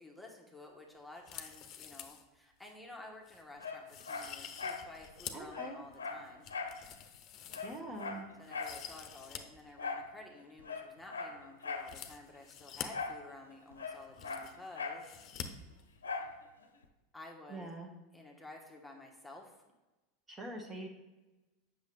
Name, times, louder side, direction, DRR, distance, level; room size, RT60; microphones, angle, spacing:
voice 1, 0.0-6.5 8.4-15.1 17.1-17.7 18.1-19.6, left 2 dB, 5° left, -1 dB, 1.3 m, -52 dB
sound 1, 1.2-2.2 2.6-2.7 3.3-3.4 3.9-5.5 5.9-8.1 8.4-9.4 9.7-9.8 11.8-12.9 13.7-13.8 14.0-14.7 15.0-15.5 15.7-15.8, left 9 dB, 45° left, 0.7 m, -47 dB
Dog, 3.6-4.9 5.2-5.3 5.5-6.8 7.1-7.2 7.5-8.8 9.8-10.1 10.6-11.9 12.9-13.2 13.5-15.1 16.0-16.4 16.8-16.9, left 4 dB, 85° left, 0.7 m, -40 dB
voice 2, 5.3-5.8 7.6-8.3 17.5-17.9 20.3-20.9, right 2 dB, 25° right, 1 dB, 1.4 m, -43 dB
8.0 x 6.3 x 3.4 m, 1.1 s
hypercardioid pair, 85°, 0 cm